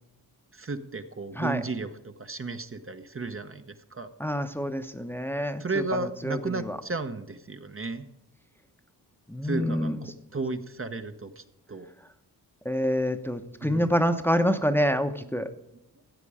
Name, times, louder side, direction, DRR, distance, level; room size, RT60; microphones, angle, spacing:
voice 1, 0.5-4.1 5.6-8.0 9.4-9.9 10.3-11.9 13.6-13.9, right 3 dB, 30° right, 7 dB, 1.0 m, -34 dB
voice 2, 4.2-6.8 9.3-10.0 12.6-15.5, equal, 5° left, 7 dB, 1.0 m, -27 dB
15.5 x 8.3 x 4.9 m, 0.89 s
cardioid pair, 70°, 40 cm